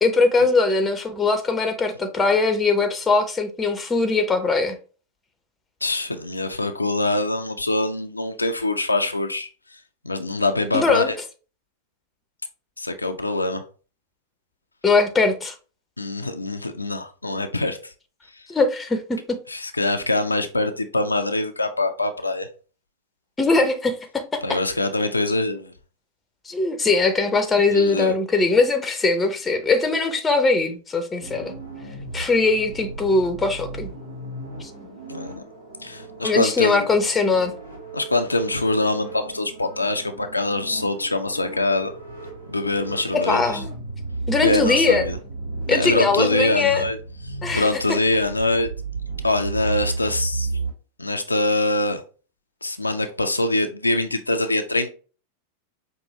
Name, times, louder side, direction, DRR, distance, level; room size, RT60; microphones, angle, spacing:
voice 1, 0.0-4.8 10.7-11.1 14.8-15.5 18.5-19.2 23.4-24.4 26.5-31.5 32.1-33.9 34.6-34.7 36.2-37.5 43.1-43.6 44.3-45.0 45.7-46.8 47.4-47.7, left 3 dB, 15° left, 0.7 m, -21 dB
voice 2, 5.8-9.5 10.0-11.2 12.8-13.6 16.0-17.9 19.5-22.5 24.4-25.7 27.7-28.1 35.1-35.4 35.8-36.9 37.9-41.9 42.5-43.6 44.4-45.2 45.7-47.0 47.2-48.7 49.2-50.5 51.0-52.0 52.6-54.9, left 2 dB, 80° left, 0.4 m, -24 dB
sound 1, 31.2-50.7, right 3 dB, 85° right, 1.7 m, -34 dB
5.3 x 2.6 x 3.0 m
figure-of-eight pair, 90°, 0 cm